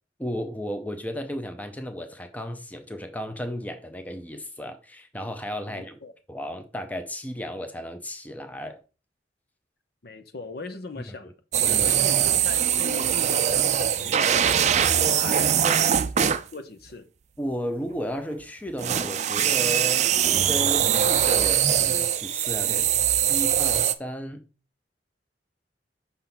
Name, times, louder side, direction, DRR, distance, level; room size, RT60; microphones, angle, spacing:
voice 1, 0.2-6.0 6.3-8.8 11.7-12.2 15.6-15.8 17.4-22.9 23.3-24.4, equal, 10° left, 0.6 m, -34 dB
voice 2, 5.6-6.1 10.0-11.3 11.8-15.9 16.2-17.1, left 3 dB, 60° left, 0.8 m, -39 dB
sound 1, 11.5-16.4 18.8-23.9, right 9 dB, 40° right, 0.4 m, -22 dB
5.7 x 3.6 x 5.9 m
head